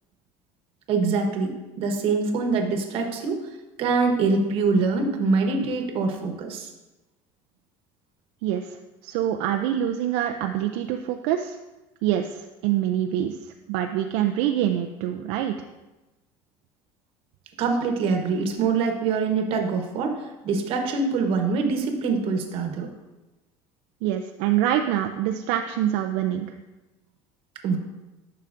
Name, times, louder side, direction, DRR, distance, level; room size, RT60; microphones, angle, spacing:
voice 1, 0.9-3.4 3.8-6.7 17.6-22.9 27.6-27.8, right 4 dB, 55° right, 4 dB, 1.1 m, -24 dB
voice 2, 8.4-8.8 9.0-11.6 12.0-13.4 13.7-15.5 24.0-26.5, right 11 dB, 80° right, 5 dB, 0.4 m, -25 dB
10.5 x 5.7 x 2.5 m, 1.1 s
cardioid pair, 135°, 11 cm